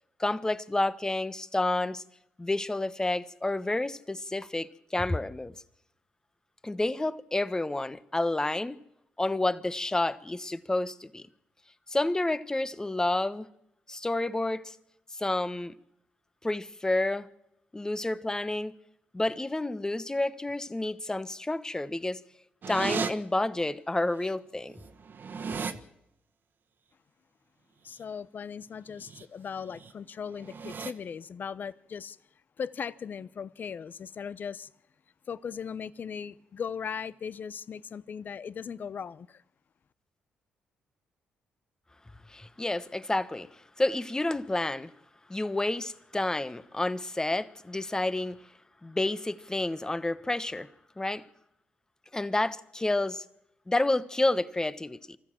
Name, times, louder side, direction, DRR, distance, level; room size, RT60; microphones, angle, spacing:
voice 1, 0.2-2.0 2.4-5.5 6.6-8.8 9.2-11.2 11.9-13.5 13.9-14.8 15.1-15.7 16.4-17.3 17.7-18.8 19.1-22.2 22.7-24.8 42.3-44.9 45.3-48.5 48.8-50.7 51.0-51.3 52.1-53.2 53.7-55.2, left 2 dB, 15° left, 1.1 m, -30 dB
sound 1, 22.6-23.1 24.3-24.4 24.7-25.7 28.9-29.2 29.6-29.9 30.4-30.9, right 5 dB, 55° right, 1.5 m, -35 dB
voice 2, 27.8-32.2 32.6-34.7 35.3-39.4, left 7 dB, 55° left, 0.8 m, -38 dB
24.5 x 14.0 x 7.6 m
supercardioid pair, 60°, 4 cm